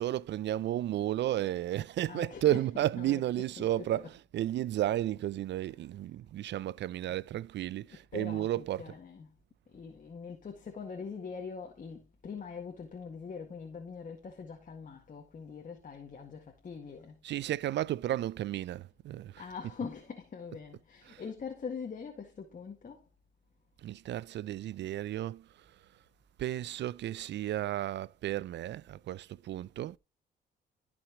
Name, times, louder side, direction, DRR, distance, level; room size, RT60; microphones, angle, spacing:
voice 1, 0.0-8.9 17.2-19.4 21.1-21.2 23.8-25.9 26.4-30.0, right 13 dB, 65° right, 0.4 m, -33 dB
voice 2, 2.1-4.1 7.1-7.2 7.9-9.4 9.7-17.2 19.4-23.1, left 5 dB, 40° left, 1.9 m, -43 dB
15.0 x 6.1 x 3.0 m
cardioid pair, 90°, 20 cm